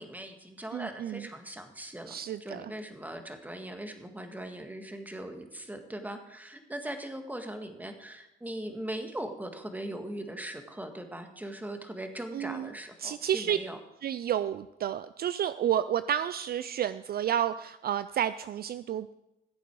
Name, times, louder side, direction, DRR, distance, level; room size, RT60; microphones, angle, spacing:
voice 1, 0.0-13.8, right 1 dB, 10° right, 6 dB, 1.7 m, -40 dB
voice 2, 0.7-1.3 2.1-2.7 12.3-12.7 13.0-13.6 14.0-19.1, right 10 dB, 50° right, 13 dB, 0.4 m, -30 dB
15.5 x 8.0 x 4.7 m, 0.92 s
cardioid pair, 90°, 20 cm